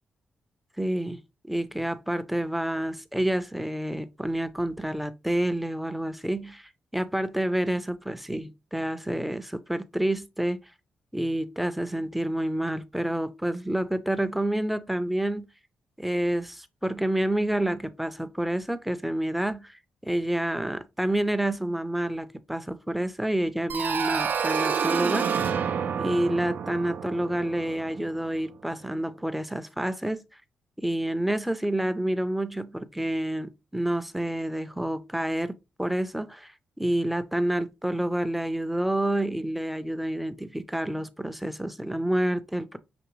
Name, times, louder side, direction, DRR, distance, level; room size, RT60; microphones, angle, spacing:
voice 1, 0.8-1.2 1.5-10.6 11.1-15.5 16.0-25.3 26.0-30.2 30.8-42.8, right 1 dB, 5° right, 0.5 m, -28 dB
sound 1, 23.7-28.4, right 7 dB, 55° right, 0.4 m, -28 dB
6.0 x 2.9 x 3.1 m
cardioid pair, 90°, 4 cm